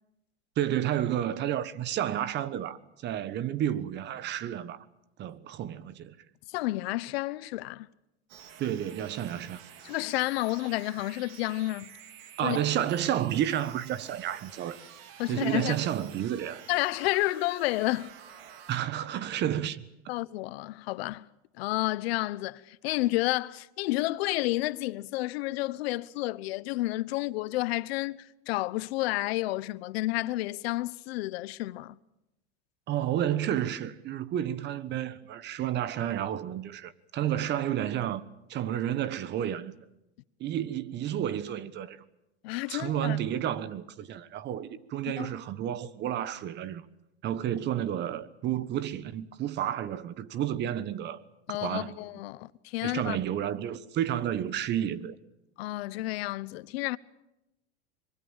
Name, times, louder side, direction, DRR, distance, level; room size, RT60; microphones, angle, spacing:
voice 1, 0.6-4.8 5.2-6.1 8.6-9.6 12.4-14.8 15.2-16.6 18.7-19.8 32.9-38.2 38.5-39.7 40.4-42.0 42.7-46.8 47.2-51.2 51.6-52.0 52.8-55.2, right 11 dB, 30° right, 1.3 m, -31 dB
voice 2, 6.5-7.9 9.8-11.9 12.4-12.6 15.2-15.8 16.7-18.1 20.1-21.3 21.6-32.0 42.4-43.2 45.2-45.3 51.5-53.2 55.6-57.0, left 18 dB, 65° left, 1.1 m, -30 dB
sound 1, 8.3-18.8, right 8 dB, 60° right, 3.2 m, -50 dB
25.0 x 23.0 x 7.4 m
supercardioid pair, 140°, 33 cm